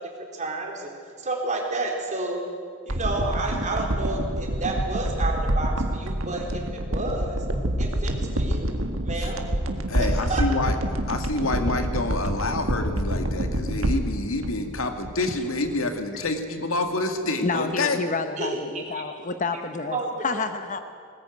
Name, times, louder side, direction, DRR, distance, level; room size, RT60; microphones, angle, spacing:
voice 1, 0.2-0.9 1.2-2.4 2.9-7.4 7.8-8.7 9.0-9.4 10.0-10.4 18.4-19.0 19.5-19.6 19.9-20.4, right 2 dB, 35° right, 4.1 m, -30 dB
sound 1, 2.9-15.4 15.6-15.7, right 1 dB, 70° right, 1.8 m, -27 dB
voice 2, 9.9-10.8 11.1-18.0, left 2 dB, 80° left, 2.2 m, -27 dB
voice 3, 17.4-20.0 20.2-20.8, left 4 dB, 40° left, 0.9 m, -29 dB
20.5 x 19.0 x 9.3 m
head